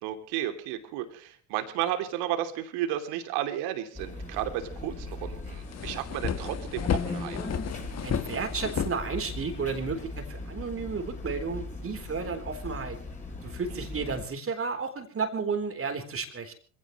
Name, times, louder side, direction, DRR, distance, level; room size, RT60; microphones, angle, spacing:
voice 1, 0.0-7.4 13.7-14.1, right 12 dB, 65° right, 7 dB, 3.1 m, -33 dB
sound 1, 3.9-14.3, left 2 dB, 15° left, 7.9 m, -39 dB
sound 2, 5.0-5.1 5.4-9.7, left 8 dB, 35° left, 1.7 m, -32 dB
voice 2, 8.0-13.0 13.4-16.5, right 5 dB, 30° right, 6 dB, 3.9 m, -32 dB
26.0 x 17.0 x 3.2 m, 0.41 s
hypercardioid pair, 70°, 43 cm